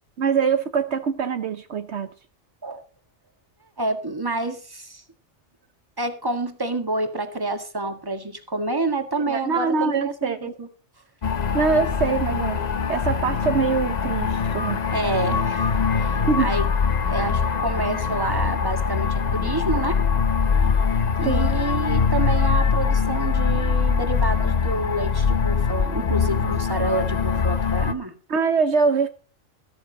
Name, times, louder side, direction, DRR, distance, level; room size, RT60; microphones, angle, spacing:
voice 1, 0.2-2.1 9.3-10.5 11.5-12.6 12.9-14.8 16.3-16.5 21.2-21.5 28.3-29.1, right 5 dB, 70° right, 1.2 m, -23 dB
voice 2, 3.8-5.0 6.0-10.7 14.9-16.7 17.1-20.1 21.2-28.1, right 2 dB, 20° right, 1.8 m, -28 dB
sound 1, 11.2-27.9, left 5 dB, 40° left, 0.8 m, -23 dB
14.0 x 13.5 x 4.0 m
omnidirectional pair, 1.2 m